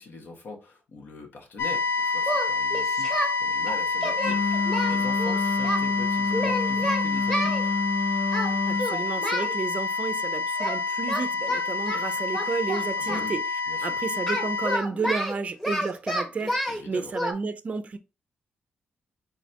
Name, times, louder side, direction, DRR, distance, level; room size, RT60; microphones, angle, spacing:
voice 1, 0.0-7.7 13.0-13.3 13.7-14.0 16.7-17.1, left 3 dB, 70° left, 1.5 m, -42 dB
sound 1, 1.6-14.8, left 4 dB, 90° left, 0.6 m, -28 dB
Singing, 2.2-3.3 3.7-5.8 6.3-7.6 8.3-8.5 8.8-9.5 10.6-10.8 11.1-13.3 14.3-16.8 17.1-17.3, equal, 10° left, 1.1 m, -29 dB
Wind instrument woodwind instrument, 4.2-8.9, left 4 dB, 45° left, 0.5 m, -28 dB
voice 2, 8.7-13.4 13.8-18.0, right 4 dB, 35° right, 0.4 m, -32 dB
4.1 x 4.1 x 2.9 m
wide cardioid pair, 125°, 4 cm